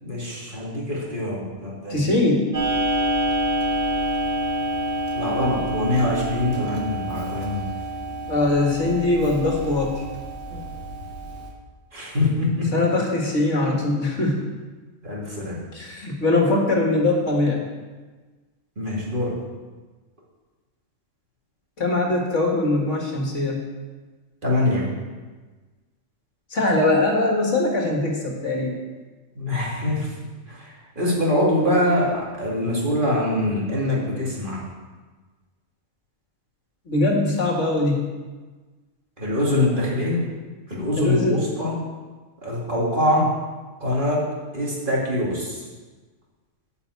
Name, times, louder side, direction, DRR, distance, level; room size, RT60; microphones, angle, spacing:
voice 1, 0.0-2.1 5.1-7.6 11.9-12.7 15.0-15.6 18.8-19.4 24.4-24.9 29.4-30.1 30.5-30.6 31.0-34.6 39.2-40.2 40.7-41.7 42.4-43.3 43.8-44.2 44.5-45.6, left 1 dB, 40° right, -5 dB, 2.6 m, -23 dB
voice 2, 1.9-2.5 8.3-10.0 12.7-14.4 15.7-17.6 21.8-23.6 26.5-28.7 36.9-38.0 41.0-41.4, left 2 dB, 65° left, 0 dB, 2.0 m, -21 dB
Clock, 2.5-11.5, right 1 dB, 55° right, 2.0 m, -27 dB
10.0 x 5.6 x 8.2 m, 1.3 s
omnidirectional pair, 1.4 m